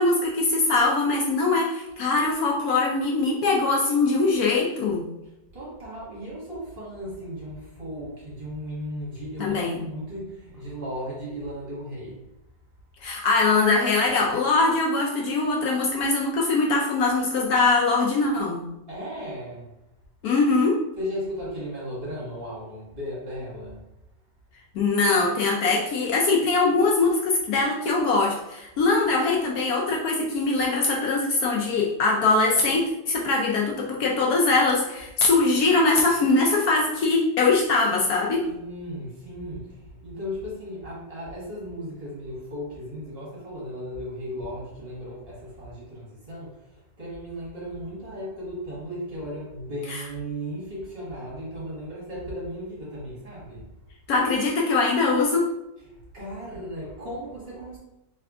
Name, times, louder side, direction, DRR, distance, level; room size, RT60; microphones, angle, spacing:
voice 1, 0.0-5.0 9.4-9.8 13.0-18.6 20.2-20.8 24.7-38.5 49.9-50.0 54.1-55.5, left 3 dB, 70° left, -2 dB, 1.0 m, -22 dB
voice 2, 5.5-12.2 18.9-19.7 21.0-23.8 38.5-53.7 55.9-57.8, equal, 35° right, -7 dB, 1.8 m, -36 dB
3.5 x 3.4 x 3.6 m, 0.90 s
omnidirectional pair, 1.8 m